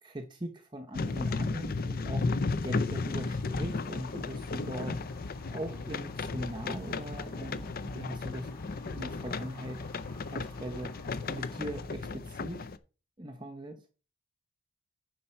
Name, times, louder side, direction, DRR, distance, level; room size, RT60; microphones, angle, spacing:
voice 1, 0.0-5.0 5.5-8.5 8.9-9.8 10.3-10.9 11.3-12.7 13.2-13.8, right 1 dB, 20° right, 4 dB, 0.7 m, -41 dB
sound 1, 0.9-12.8, left 3 dB, 40° left, 0.5 m, -34 dB
sound 2, 3.0-11.8, left 2 dB, 25° left, 1.5 m, -56 dB
9.9 x 5.4 x 4.4 m, 0.35 s
head